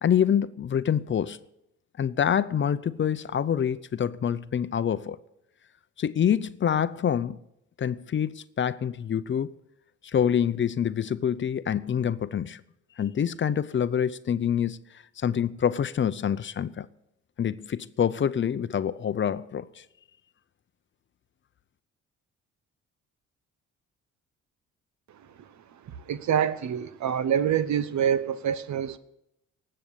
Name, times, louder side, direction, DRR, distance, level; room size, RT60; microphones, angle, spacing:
voice 1, 0.0-1.4 2.0-5.2 6.0-7.4 7.8-9.5 10.1-12.6 13.0-14.8 15.2-16.9 17.4-19.6, left 8 dB, 40° left, 0.6 m, -26 dB
voice 2, 25.8-29.0, right 9 dB, 70° right, 1.0 m, -26 dB
18.5 x 7.8 x 6.9 m
cardioid pair, 90°, 30 cm